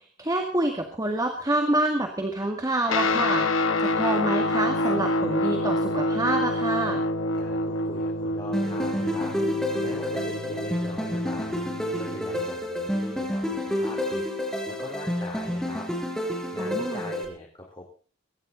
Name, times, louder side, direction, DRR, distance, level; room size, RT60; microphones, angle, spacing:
voice 1, 0.2-7.0 16.6-17.1, right 1 dB, 20° right, 3 dB, 2.0 m, -27 dB
Guitar, 2.9-12.5, left 1 dB, 85° left, 1.5 m, -27 dB
voice 2, 7.3-11.6 12.0-14.3 14.7-15.9 16.5-17.9, left 1 dB, 25° left, -2 dB, 4.1 m, -41 dB
sound 1, 8.5-17.2, left 1 dB, 5° left, 5.0 m, -29 dB
24.0 x 11.0 x 4.1 m, 0.40 s
head